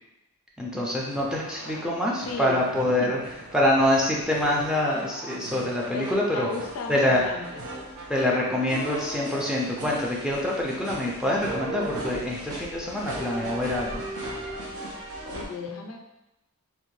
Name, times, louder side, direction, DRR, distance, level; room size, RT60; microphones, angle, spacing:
voice 1, 0.6-3.2 3.5-6.5 6.9-7.2 8.1-14.0, left 1 dB, 5° right, -3 dB, 0.3 m, -25 dB
sound 1, 1.0-15.5, right 1 dB, 70° right, 0.6 m, -38 dB
voice 2, 2.2-2.6 2.9-3.1 5.9-7.6 15.2-16.0, left 4 dB, 70° left, 2 dB, 0.4 m, -36 dB
2.6 x 2.1 x 3.0 m, 0.94 s
head